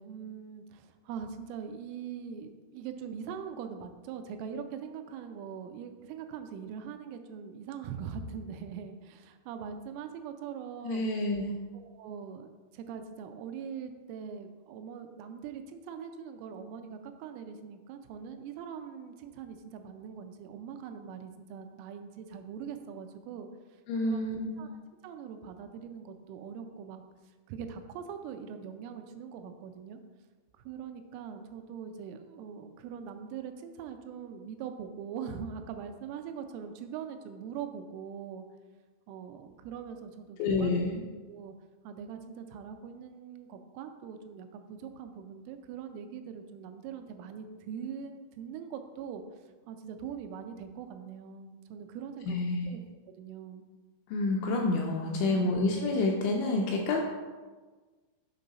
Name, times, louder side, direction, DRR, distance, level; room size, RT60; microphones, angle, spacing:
voice 1, 0.0-11.1 11.7-23.5 24.0-24.3 24.6-24.7 25.0-27.0 27.5-30.0 30.6-38.4 39.1-40.8 41.3-41.5 41.8-49.2 49.7-52.8 53.2-53.7 55.3-55.5, right 7 dB, 85° right, 7 dB, 3.1 m, -42 dB
voice 2, 10.8-11.6 23.9-24.8 40.4-41.0 52.3-52.7 54.1-57.0, left 2 dB, 85° left, 1 dB, 2.5 m, -29 dB
7.5 x 5.3 x 4.0 m, 1.3 s
omnidirectional pair, 5.8 m